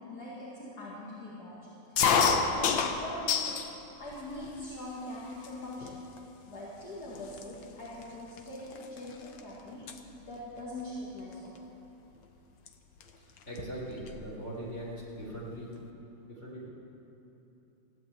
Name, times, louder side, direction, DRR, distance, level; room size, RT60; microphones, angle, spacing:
voice 1, 0.0-1.7 2.2-3.6 4.0-6.0 6.5-9.9 10.3-11.6, left 1 dB, 55° left, -8 dB, 2.7 m, -42 dB
sound 1, 2.0-3.7 4.1-4.8 5.4-5.5 5.8-6.2 6.8-6.9 7.1-9.4 9.7-10.0 11.3-11.6 12.7-12.8 13.0-13.1 13.4-14.3, left 6 dB, 75° left, 1.6 m, -29 dB
voice 2, 13.2-15.7 16.3-16.7, right 1 dB, 35° left, -6 dB, 4.2 m, -41 dB
15.5 x 10.5 x 8.5 m, 3.0 s
omnidirectional pair, 2.0 m